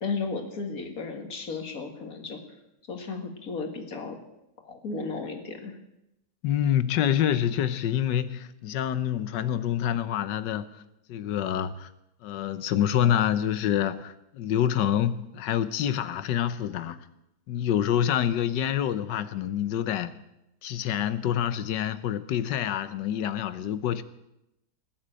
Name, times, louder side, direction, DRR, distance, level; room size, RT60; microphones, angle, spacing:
voice 1, 0.0-2.4 2.9-4.2 4.6-5.8, left 4 dB, 55° left, 2.3 m, -34 dB
voice 2, 6.4-10.8 11.1-11.9 12.2-17.0 17.5-20.1 20.6-24.0, left 10 dB, 90° left, 1.5 m, -27 dB
19.0 x 7.5 x 8.8 m
omnidirectional pair, 1.8 m